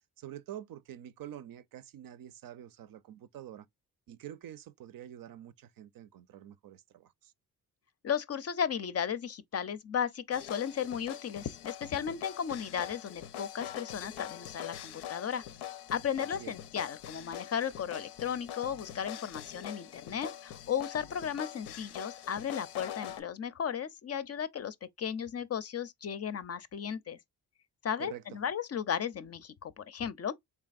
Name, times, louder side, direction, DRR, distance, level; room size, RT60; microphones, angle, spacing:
voice 1, 0.2-3.7 4.1-7.3 16.4-16.5 28.0-28.2, right 11 dB, 60° right, 0.5 m, -47 dB
voice 2, 8.0-15.4 15.9-27.2 27.8-30.3, left 8 dB, 40° left, 0.5 m, -35 dB
sound 1, 10.3-23.2, left 10 dB, 85° left, 0.6 m, -44 dB
3.7 x 3.3 x 2.4 m
cardioid pair, 70°, 39 cm